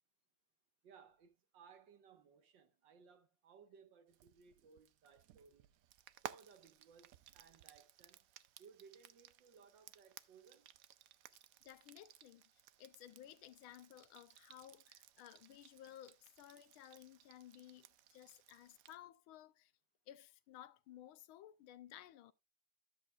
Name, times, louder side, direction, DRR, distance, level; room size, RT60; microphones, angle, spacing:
voice 1, 0.8-5.7 6.2-8.3 8.6-10.7, right 6 dB, 65° right, 1.9 m, -63 dB
Frying (food), 4.1-19.0, right 11 dB, 80° right, 0.7 m, -59 dB
voice 2, 11.6-19.7 20.1-22.3, left 12 dB, 90° left, 1.5 m, -57 dB
13.0 x 7.9 x 2.4 m
omnidirectional pair, 2.2 m